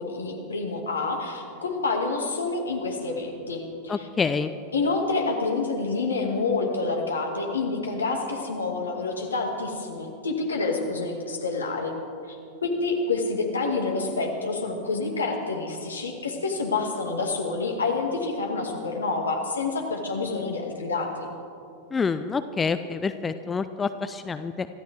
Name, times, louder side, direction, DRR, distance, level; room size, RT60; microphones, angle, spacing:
voice 1, 0.0-4.1 4.7-12.0 12.3-21.3, left 3 dB, 75° left, 2 dB, 2.2 m, -28 dB
voice 2, 3.9-4.5 21.9-24.7, left 5 dB, 15° left, 11 dB, 0.5 m, -27 dB
26.0 x 13.5 x 3.5 m, 2.6 s
figure-of-eight pair, 90°, 0 cm